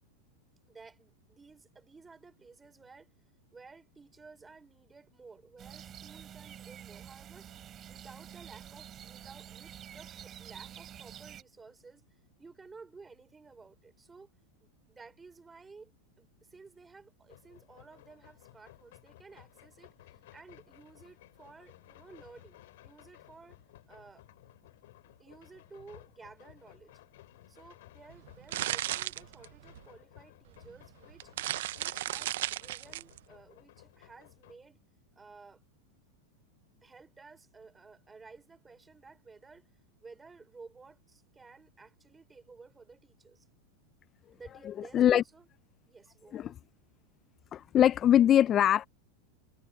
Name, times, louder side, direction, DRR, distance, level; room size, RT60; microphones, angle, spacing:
voice 1, 0.7-3.1 3.5-7.5 7.9-12.0 12.4-14.3 14.6-15.9 16.2-23.6 23.9-24.2 25.2-27.0 27.5-31.3 31.8-34.8 35.1-35.6 36.8-39.7 40.0-43.5 44.3-45.5 45.9-46.5, right 4 dB, 15° right, 4.3 m, -54 dB
sound 1, 5.6-11.4, right 10 dB, 30° right, 6.5 m, -48 dB
sound 2, 17.3-34.6, left 16 dB, 75° left, 2.7 m, -58 dB
sound 3, 28.1-29.9 30.6-30.7 31.1-33.2, right 14 dB, 75° right, 0.5 m, -34 dB
voice 2, 47.5-48.9, left 11 dB, 30° left, 0.3 m, -22 dB
supercardioid pair, 135°, 0 cm